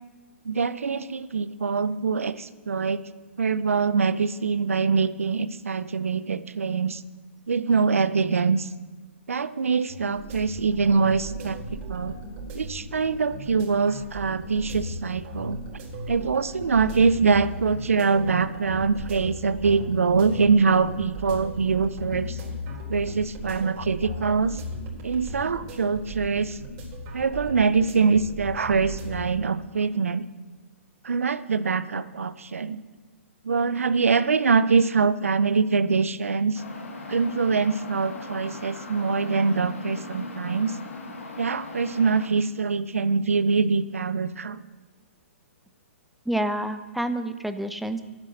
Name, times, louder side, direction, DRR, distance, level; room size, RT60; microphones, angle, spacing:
voice 1, 0.4-3.0 3.4-7.0 7.5-8.7 9.3-11.6 11.9-12.1 12.5-15.6 16.1-22.4 22.9-24.6 25.0-26.6 27.1-30.3 31.0-32.8 33.4-36.6 37.1-40.7 41.4-44.6, right 5 dB, 80° right, 15 dB, 0.7 m, -24 dB
sound 1, 9.9-29.3, equal, 40° right, 4.2 m, -37 dB
sound 2, 36.5-42.3, left 2 dB, 80° left, 2.1 m, -38 dB
voice 2, 46.2-48.0, right 1 dB, ahead, 9 dB, 0.7 m, -28 dB
12.0 x 9.6 x 6.5 m, 1.3 s
hypercardioid pair, 125°, 7 cm